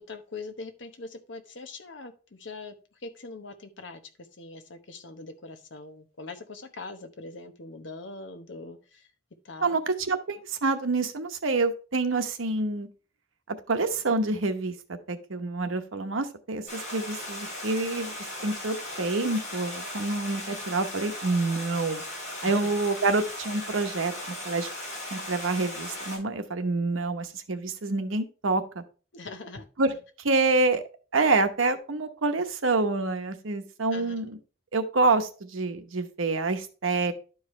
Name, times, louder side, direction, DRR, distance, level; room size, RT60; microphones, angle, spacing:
voice 1, 0.1-9.1 9.4-9.8 22.4-22.7 29.1-29.7 33.9-34.2, left 3 dB, 70° left, 8 dB, 0.9 m, -42 dB
voice 2, 9.6-12.9 13.5-18.1 18.4-22.0 22.4-24.7 25.1-28.8 29.8-29.9 30.2-30.8 31.1-34.4 34.7-37.1, right 3 dB, 85° right, 8 dB, 0.9 m, -27 dB
Stream, 16.7-26.2, left 1 dB, 35° left, 4.4 m, -37 dB
11.5 x 4.8 x 3.2 m, 0.36 s
head